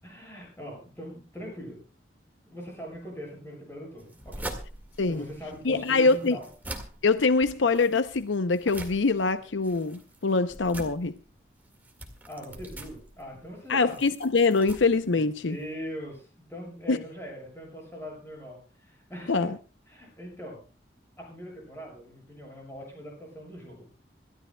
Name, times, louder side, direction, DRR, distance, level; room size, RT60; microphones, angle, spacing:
voice 1, 0.0-1.8 2.5-4.5 5.1-6.5 12.3-14.0 15.1-19.5 19.9-20.6 21.2-23.9, equal, 15° left, 7.4 m, -41 dB
sound 1, 4.0-15.7, right 1 dB, 10° right, 1.9 m, -44 dB
voice 2, 5.6-6.4 7.0-11.1 13.7-15.6 16.9-17.0 19.3-19.6, left 4 dB, 80° left, 0.7 m, -24 dB
27.0 x 13.5 x 2.3 m
head